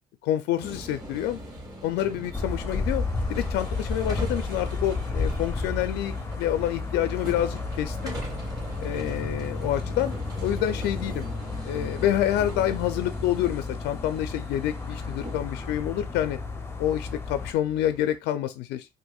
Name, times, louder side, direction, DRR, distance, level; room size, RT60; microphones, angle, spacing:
voice 1, 0.2-1.4 1.8-3.0 3.3-8.2 8.8-10.1 10.4-11.3 11.7-16.4 16.8-18.9, left 12 dB, 85° left, 0.4 m, -27 dB
sound 1, 0.6-18.2, right 1 dB, 20° right, 2.0 m, -40 dB
sound 2, 2.3-17.5, left 3 dB, 15° left, 0.6 m, -32 dB
4.4 x 2.5 x 2.3 m
cardioid pair, 110°, 17 cm